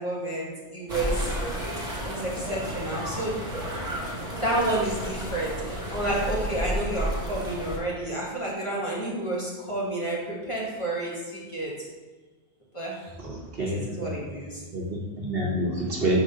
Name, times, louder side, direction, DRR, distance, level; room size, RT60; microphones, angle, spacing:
voice 1, 0.0-1.3 2.0-3.3 4.2-11.7 12.7-13.1 13.6-14.6, right 1 dB, 25° left, -6 dB, 1.6 m, -30 dB
sound 1, 0.9-7.8, right 1 dB, 30° right, 1.5 m, -32 dB
voice 2, 13.2-14.1 14.7-16.2, right 1 dB, 55° right, -2 dB, 1.2 m, -28 dB
5.8 x 3.9 x 5.2 m, 1.3 s
omnidirectional pair, 1.2 m